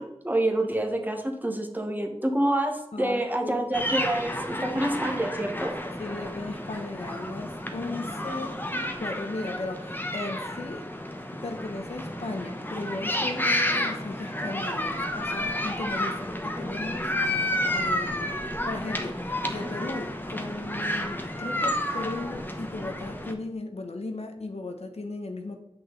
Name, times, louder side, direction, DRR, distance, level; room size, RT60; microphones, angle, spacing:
voice 1, 0.0-5.7, right 1 dB, 15° right, 3 dB, 1.2 m, -27 dB
voice 2, 2.9-3.6 4.0-4.1 4.5-4.8 6.0-10.9 11.3-18.4 18.6-25.6, left 2 dB, 80° left, 5 dB, 1.0 m, -36 dB
sound 1, 3.7-23.3, left 1 dB, 20° left, 0.9 m, -31 dB
7.8 x 5.9 x 3.9 m, 0.86 s
wide cardioid pair, 50°, 11 cm